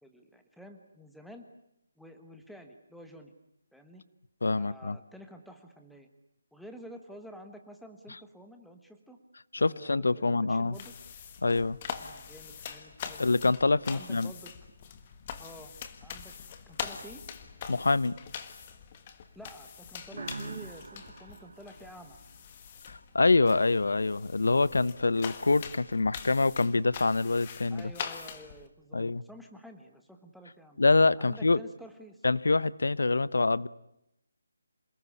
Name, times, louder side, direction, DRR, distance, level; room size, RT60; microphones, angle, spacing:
voice 1, 0.0-1.4 2.0-3.3 3.7-4.0 4.5-6.1 6.5-9.2 9.5-10.9 12.0-13.3 13.9-14.5 15.4-15.7 16.0-16.3 16.7-17.2 19.3-22.2 27.7-30.8 31.2-32.2, equal, ahead, 1.3 m, -50 dB
voice 2, 4.4-5.0 9.5-10.7 11.4-11.8 13.2-14.3 17.7-18.2 22.9-27.9 28.9-29.2 30.8-31.6 32.2-33.7, left 3 dB, 80° left, 0.9 m, -25 dB
sound 1, 10.7-28.7, left 7 dB, 20° left, 1.5 m, -43 dB
sound 2, 20.1-22.8, right 3 dB, 65° right, 0.9 m, -44 dB
27.5 x 19.0 x 9.9 m
hypercardioid pair, 175°, 0 cm